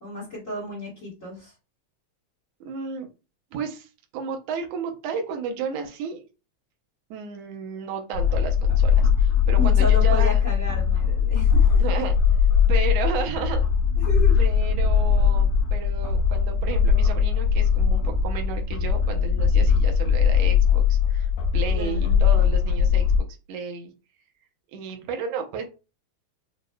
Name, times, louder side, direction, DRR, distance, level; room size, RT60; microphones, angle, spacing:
voice 1, 0.0-1.5 9.5-11.8 14.0-14.4 21.7-22.2, equal, 35° left, -4 dB, 1.3 m, -33 dB
voice 2, 2.6-3.1 3.5-6.2 7.1-10.3 11.8-12.2 12.7-13.6 14.4-23.9 24.7-25.6, right 6 dB, 70° right, 3 dB, 1.6 m, -33 dB
sound 1, 8.1-23.2, left 6 dB, 85° left, 2.1 m, -20 dB
6.1 x 2.4 x 2.2 m, 0.31 s
omnidirectional pair, 3.5 m